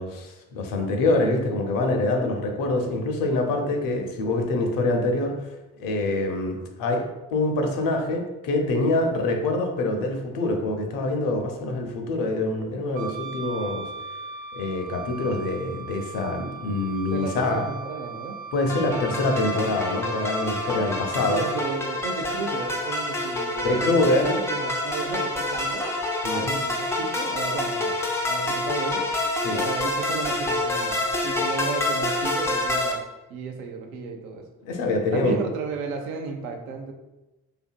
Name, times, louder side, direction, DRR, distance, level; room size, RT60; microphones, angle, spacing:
voice 1, 0.0-5.4 5.8-7.0 7.3-13.9 14.5-17.6 18.5-21.4 23.6-24.3 26.2-26.6 29.4-29.6 34.6-35.4, left 2 dB, 55° left, 3 dB, 0.6 m, -25 dB
Wind instrument woodwind instrument, 12.9-21.6, right 5 dB, 45° right, 0.9 m, -38 dB
voice 2, 17.1-18.4 18.7-18.9 21.3-25.9 26.3-29.1 29.5-30.9 31.2-33.0 33.3-34.5 35.1-36.9, right 4 dB, 75° right, 3 dB, 0.5 m, -34 dB
sound 1, 18.7-32.9, left 2 dB, 5° left, 0.3 m, -27 dB
2.6 x 2.5 x 2.3 m, 1.1 s
figure-of-eight pair, 45°, 42 cm